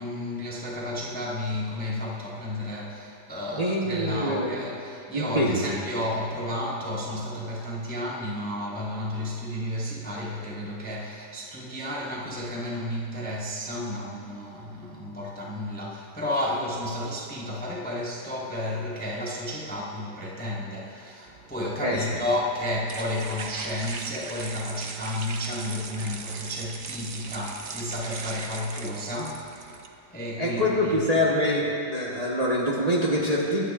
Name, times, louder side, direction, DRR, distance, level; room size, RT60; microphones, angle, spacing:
voice 1, 0.0-31.0, left 1 dB, 5° left, -4 dB, 0.9 m, -32 dB
voice 2, 3.5-4.6 5.1-5.8 21.8-22.1 30.4-33.7, equal, 25° right, -5 dB, 1.0 m, -25 dB
sound 1, 21.3-29.9, right 4 dB, 80° right, 0.4 m, -40 dB
21.5 x 9.5 x 2.5 m, 2.7 s
omnidirectional pair, 1.9 m